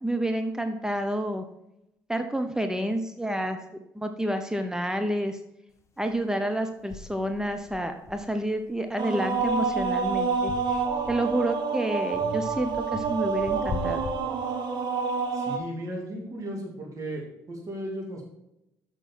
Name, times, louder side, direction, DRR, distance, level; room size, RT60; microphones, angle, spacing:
voice 1, 0.0-1.4 2.1-3.6 4.0-5.4 6.0-10.8 11.1-14.1, right 1 dB, 5° right, 6 dB, 0.8 m, -29 dB
clay drum, 6.1-6.2 6.9-8.7 9.2-11.5 12.1-14.9, left 4 dB, 35° left, 1.5 m, -41 dB
sound 1, 9.0-15.6, right 5 dB, 60° right, 1.1 m, -28 dB
voice 2, 15.3-18.3, right 1 dB, 40° right, -2 dB, 2.6 m, -36 dB
6.9 x 6.1 x 4.3 m, 0.86 s
hypercardioid pair, 50°, 9 cm